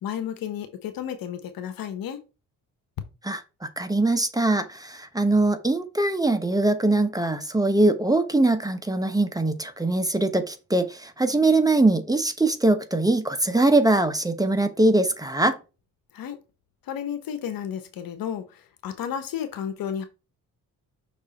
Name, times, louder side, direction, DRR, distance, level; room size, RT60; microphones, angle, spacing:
voice 1, 0.0-2.2 16.1-16.4 16.9-20.1, left 9 dB, 80° left, 1.4 m, -32 dB
voice 2, 3.2-15.6, right 2 dB, 10° right, 1.0 m, -22 dB
6.2 x 3.6 x 4.3 m
cardioid pair, 90°, 34 cm